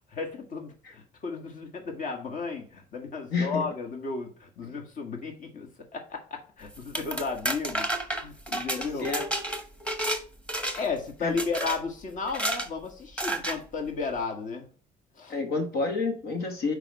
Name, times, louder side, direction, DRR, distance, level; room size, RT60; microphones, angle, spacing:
voice 1, 0.1-7.9 8.2-9.1 10.8-14.7 15.2-15.4, left 4 dB, 50° left, 1.8 m, -34 dB
voice 2, 3.3-3.7 9.0-9.3 11.2-11.4 15.3-16.7, left 4 dB, 70° left, 1.7 m, -29 dB
sound 1, 6.7-10.2 10.5-11.0 11.4-11.8 12.3-12.7 13.2-13.6, right 1 dB, 5° left, 1.3 m, -30 dB
6.1 x 5.1 x 4.8 m
cardioid pair, 110°, 17 cm